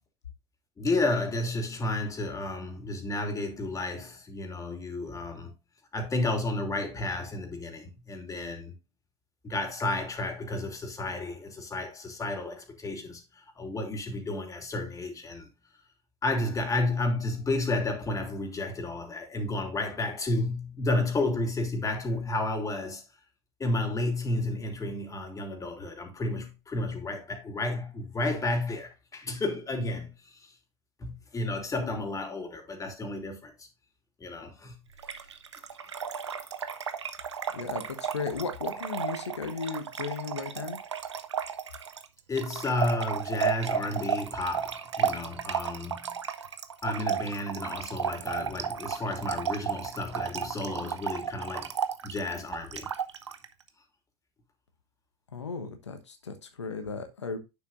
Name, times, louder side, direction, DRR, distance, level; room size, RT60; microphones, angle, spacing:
voice 1, 0.8-5.5 5.9-8.7 9.4-15.5 16.2-23.0 23.6-30.5 31.0-33.7 34.2-34.8 35.6-35.9 42.3-46.2 46.8-51.7 52.0-52.9, left 2 dB, 25° left, 2.9 m, -32 dB
Trickle dribble / Fill (with liquid), 35.0-53.5, right 7 dB, 85° right, 0.7 m, -33 dB
voice 2, 37.5-40.8 55.3-57.4, left 5 dB, 90° left, 1.1 m, -35 dB
9.5 x 6.9 x 2.5 m
hypercardioid pair, 75°, 14 cm